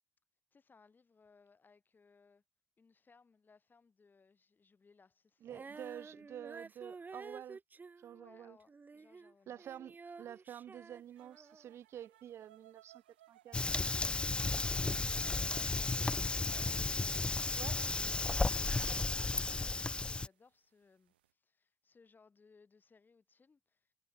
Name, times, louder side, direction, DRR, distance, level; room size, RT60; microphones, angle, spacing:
voice 1, 0.5-2.4 2.8-6.5 8.1-9.9 14.5-23.9, left 4 dB, 35° left, 6.4 m, -66 dB
voice 2, 5.4-7.6 8.0-8.6 9.5-13.0 13.3-13.8 17.5-17.8, right 10 dB, 55° right, 0.3 m, -49 dB
Female singing, 5.5-9.3 9.6-11.7, right 4 dB, 35° right, 2.5 m, -51 dB
sound 1, 11.2-20.5 20.8-21.3, right 14 dB, 85° right, 3.1 m, -64 dB
Fire, 13.5-20.3, left 3 dB, 20° left, 0.3 m, -34 dB
hypercardioid pair, 40°, 5 cm